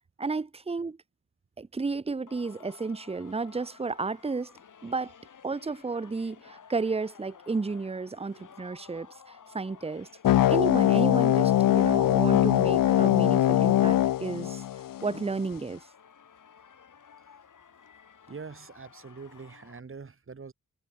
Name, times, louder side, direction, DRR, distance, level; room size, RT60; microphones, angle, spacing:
voice 1, 0.2-1.0 1.6-4.5 4.8-5.1 5.4-10.1 10.5-14.6 15.0-15.8, right 4 dB, 20° right, 0.7 m, -32 dB
Singing, 2.3-19.8, left 7 dB, 70° left, 4.2 m, -53 dB
sound 1, 10.2-15.2, left 12 dB, 85° left, 0.5 m, -22 dB
voice 2, 18.3-20.5, right 5 dB, 40° right, 4.8 m, -44 dB
wide cardioid pair, 155°, 33 cm